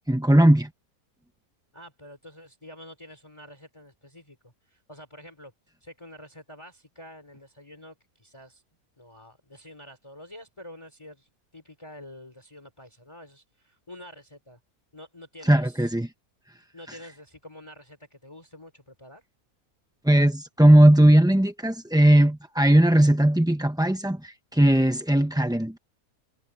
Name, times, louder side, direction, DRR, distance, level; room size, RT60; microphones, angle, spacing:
voice 1, 0.1-0.7 15.4-16.1 16.9-17.0 20.0-25.8, right 1 dB, 5° right, 0.6 m, -18 dB
voice 2, 1.7-5.5 5.8-8.6 9.0-14.6 14.9-15.9 16.7-19.2, left 1 dB, 20° left, 3.6 m, -47 dB
omnidirectional pair, 1.6 m